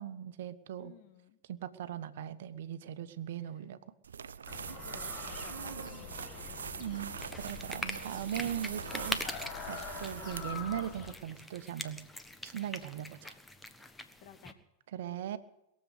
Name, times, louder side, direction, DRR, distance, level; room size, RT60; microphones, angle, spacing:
voice 1, 0.0-0.9 1.5-3.8 6.8-9.2 9.7-12.0 12.4-13.3 14.9-15.4, right 10 dB, 65° right, 12 dB, 1.2 m, -39 dB
voice 2, 0.8-1.4 3.4-3.6 4.8-6.8 14.2-14.6, left 9 dB, 55° left, 9 dB, 1.8 m, -56 dB
sound 1, 4.0-10.6, right 7 dB, 85° right, 0.6 m, -43 dB
sound 2, 4.5-11.1, left 6 dB, 35° left, 1.9 m, -45 dB
sound 3, 7.2-14.5, left 2 dB, 10° left, 1.4 m, -43 dB
21.5 x 7.9 x 8.2 m, 0.92 s
hypercardioid pair, 100°, 0 cm